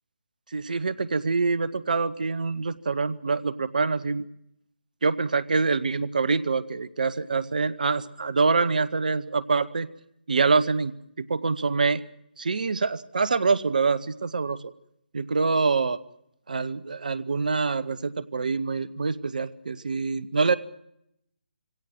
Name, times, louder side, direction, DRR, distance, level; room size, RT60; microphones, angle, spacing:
voice 1, 0.5-4.2 5.0-9.9 10.3-12.0 12.4-14.7 15.1-16.0 16.5-20.6, right 4 dB, 55° right, 17 dB, 1.1 m, -25 dB
24.0 x 17.0 x 7.8 m, 0.78 s
figure-of-eight pair, 145°, 5 cm